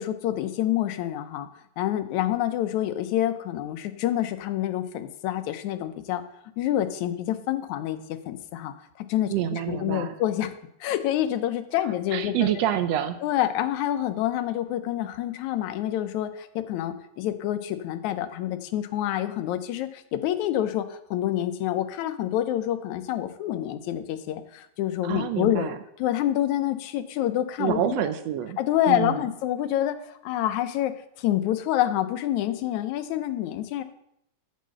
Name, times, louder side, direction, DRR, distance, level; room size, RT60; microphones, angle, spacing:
voice 1, 0.0-1.5 1.8-6.2 6.6-10.5 10.8-12.6 13.2-25.7 26.0-27.8 28.6-33.8, left 12 dB, 85° left, 10 dB, 2.1 m, -27 dB
voice 2, 9.3-10.2 12.1-13.2 25.0-25.8 27.6-28.6 28.9-29.2, right 11 dB, 75° right, 11 dB, 1.7 m, -27 dB
9.4 x 6.6 x 7.5 m, 0.77 s
omnidirectional pair, 3.3 m